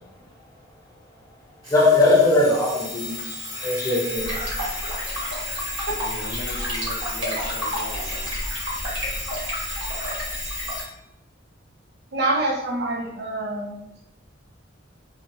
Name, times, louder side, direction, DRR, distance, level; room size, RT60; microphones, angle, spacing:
Alarm, 1.6-10.9, left 1 dB, 35° right, 1.4 m, -33 dB
voice 1, 1.7-4.4, left 2 dB, 20° left, 0.6 m, -20 dB
sound 1, 4.2-10.8, equal, 90° right, 1.1 m, -31 dB
voice 2, 6.0-8.3, left 1 dB, 65° left, 0.4 m, -38 dB
voice 3, 12.1-13.8, right 2 dB, 55° right, 0.5 m, -26 dB
2.9 x 2.4 x 2.6 m
head